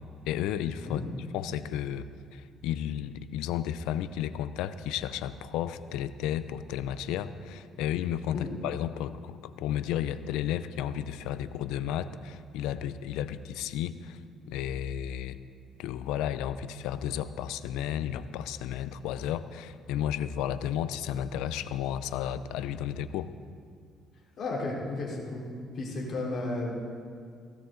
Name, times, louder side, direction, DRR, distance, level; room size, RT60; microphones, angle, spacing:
voice 1, 0.3-1.0 1.3-14.2 14.5-15.4 15.8-23.3, left 10 dB, 90° left, 13 dB, 0.6 m, -33 dB
voice 2, 24.4-25.4 25.8-26.7, left 2 dB, 50° left, -3 dB, 3.6 m, -33 dB
16.0 x 16.0 x 3.8 m, 2.1 s
cardioid pair, 110°, 0 cm